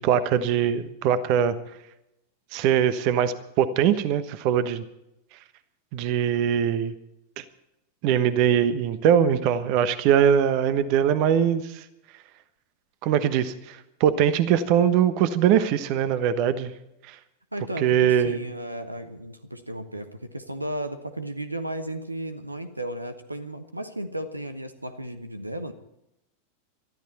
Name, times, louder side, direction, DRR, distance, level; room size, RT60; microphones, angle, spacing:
voice 1, 0.0-1.5 2.5-4.8 5.9-6.9 7.4-7.5 8.0-11.8 13.0-16.7 17.1-17.2 17.8-18.4, right 9 dB, 45° right, 13 dB, 1.1 m, -22 dB
voice 2, 17.5-25.7, right 1 dB, 85° right, 10 dB, 1.2 m, -34 dB
23.0 x 13.5 x 4.2 m, 0.84 s
figure-of-eight pair, 90°, 0 cm